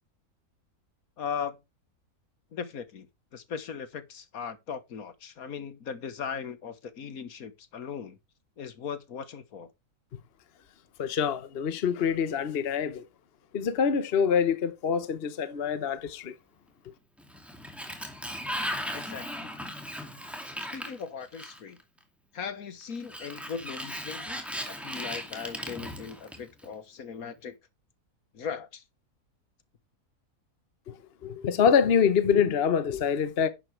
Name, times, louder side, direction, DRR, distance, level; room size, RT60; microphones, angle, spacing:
voice 1, 1.2-1.6 2.5-3.1 3.3-8.2 8.6-9.7 18.9-19.5 20.7-21.8 22.3-27.5 28.3-28.8, left 6 dB, 70° left, 1.6 m, -38 dB
voice 2, 11.0-13.0 13.5-16.3 31.2-33.5, left 7 dB, 45° left, 1.1 m, -25 dB
Sliding door, 17.2-21.8 23.0-26.7, equal, ahead, 2.2 m, -37 dB
11.0 x 7.8 x 3.3 m
omnidirectional pair, 1.6 m